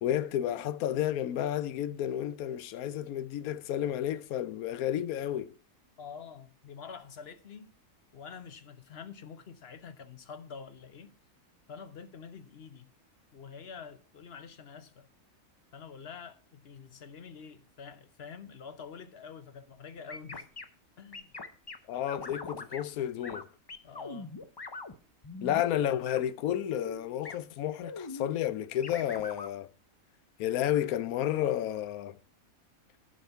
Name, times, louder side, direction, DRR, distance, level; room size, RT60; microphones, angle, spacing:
voice 1, 0.0-5.5 21.9-23.5 25.4-29.7 30.4-32.2, left 11 dB, 85° left, 1.1 m, -31 dB
voice 2, 6.0-7.7 8.1-11.1 11.7-12.9 13.3-15.1 15.7-20.5 21.0-21.3 23.8-24.4, left 6 dB, 50° left, 1.0 m, -47 dB
sound 1, 20.1-20.6 21.1-21.8 22.1-22.8 23.2-23.4 23.7-24.9 25.2-26.2 26.5-27.0 27.3-27.4 27.8-28.3 28.8-29.5, left 3 dB, 30° left, 0.5 m, -41 dB
11.5 x 5.4 x 5.6 m
omnidirectional pair, 1.5 m